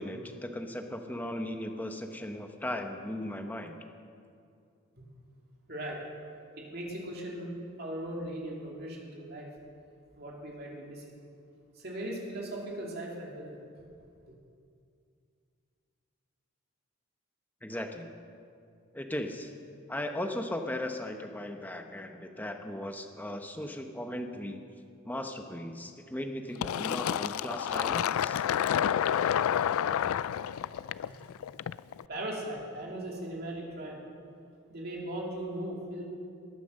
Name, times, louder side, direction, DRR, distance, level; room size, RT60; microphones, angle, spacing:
voice 1, 0.0-3.8 17.6-18.1 18.9-19.5 19.9-24.6 25.0-28.4, left 1 dB, 10° left, 4 dB, 0.9 m, -37 dB
voice 2, 5.7-6.0 6.6-9.5 10.2-11.0 11.7-13.6 31.1-31.2 32.1-34.0 34.7-36.1, right 1 dB, 45° right, -2 dB, 2.8 m, -38 dB
Fill (with liquid), 26.6-32.0, left 9 dB, 85° left, 0.3 m, -29 dB
20.0 x 9.3 x 6.4 m, 2.4 s
head